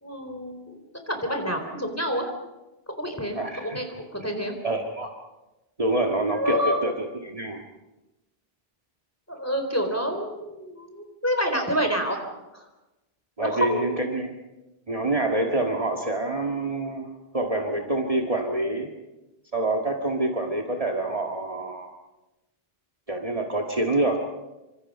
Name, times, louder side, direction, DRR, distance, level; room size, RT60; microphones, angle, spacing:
voice 1, 0.0-2.3 2.9-4.5 6.3-6.8 9.3-12.2 12.5-12.7 13.4-14.1, equal, 15° left, 4 dB, 4.1 m, -28 dB
voice 2, 3.3-3.8 4.6-5.1 5.8-7.6 13.4-14.3 14.9-18.9 19.5-21.9 23.1-24.3, right 2 dB, 35° right, 2 dB, 1.9 m, -26 dB
27.5 x 25.5 x 5.6 m, 1.0 s
omnidirectional pair, 1.0 m